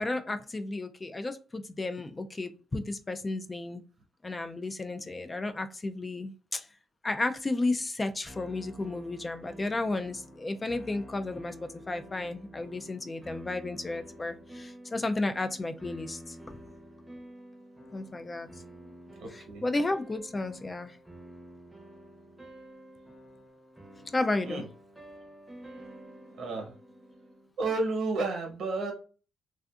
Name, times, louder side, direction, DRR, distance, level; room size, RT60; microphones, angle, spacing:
voice 1, 0.0-3.8 4.2-6.7 7.0-16.4 17.9-18.5 19.3-21.0 24.1-24.6, left 2 dB, 25° left, 8 dB, 0.3 m, -33 dB
sound 1, 8.3-27.5, equal, 10° right, 0.7 m, -49 dB
voice 2, 19.2-19.6 24.4-24.6 26.4-26.7 27.6-28.9, right 3 dB, 70° right, 3 dB, 1.0 m, -31 dB
2.5 x 2.4 x 2.3 m, 0.37 s
cardioid pair, 90°, 0 cm